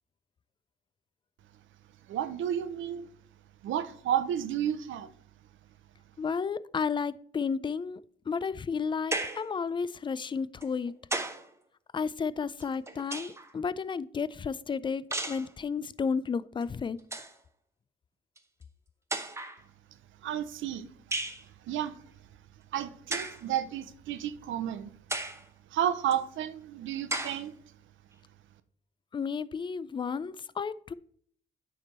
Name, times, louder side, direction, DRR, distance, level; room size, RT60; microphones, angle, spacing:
voice 1, 2.1-3.1 3.6-5.1 20.2-20.9 21.7-21.9 22.7-24.9 25.7-27.5, right 10 dB, 75° right, 0.7 m, -31 dB
voice 2, 6.2-8.0 8.3-10.9 11.9-17.0 29.1-30.9, left 5 dB, 25° left, 0.3 m, -32 dB
sound 1, 9.1-9.5 10.6-11.5 12.6-13.5 15.1-15.5 16.6-16.7 17.0-17.4 18.4-18.5 19.1-19.6 21.1-21.4 23.1-23.4 24.1-24.2 25.1-25.4 26.1-26.2 27.1-27.4, right 2 dB, 15° right, 0.8 m, -34 dB
9.2 x 3.5 x 4.2 m
cardioid pair, 90°, 20 cm